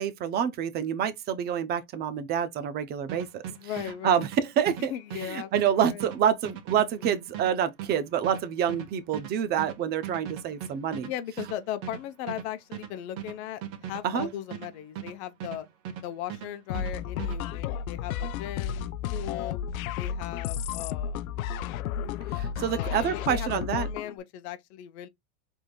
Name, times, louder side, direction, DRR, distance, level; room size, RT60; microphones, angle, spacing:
voice 1, 0.0-3.4 4.0-4.9 5.2-11.1 14.0-14.3 22.3-23.9, right 9 dB, 25° right, 0.7 m, -27 dB
sound 1, 3.1-16.0 16.3-17.4, right 9 dB, 45° right, 1.5 m, -39 dB
voice 2, 3.5-4.2 4.9-6.0 7.0-7.2 11.1-15.7 16.0-19.6 20.0-21.2 22.6-25.1, left 11 dB, 50° left, 0.9 m, -38 dB
sound 2, 16.7-24.1, left 8 dB, 80° left, 0.6 m, -32 dB
4.9 x 3.5 x 2.3 m
supercardioid pair, 145°, 42 cm